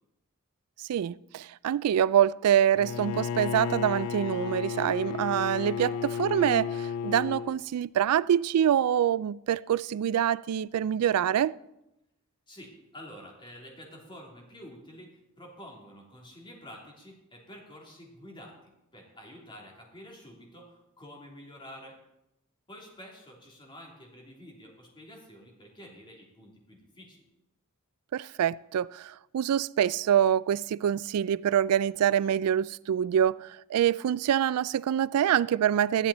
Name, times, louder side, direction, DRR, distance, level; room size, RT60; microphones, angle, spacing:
voice 1, 0.9-11.6 28.1-36.1, right 9 dB, 85° right, 0.3 m, -25 dB
Bowed string instrument, 2.8-7.6, left 7 dB, 80° left, 0.4 m, -33 dB
voice 2, 12.5-22.0 22.7-27.3, equal, 20° left, 3.0 m, -49 dB
14.5 x 11.5 x 4.2 m
head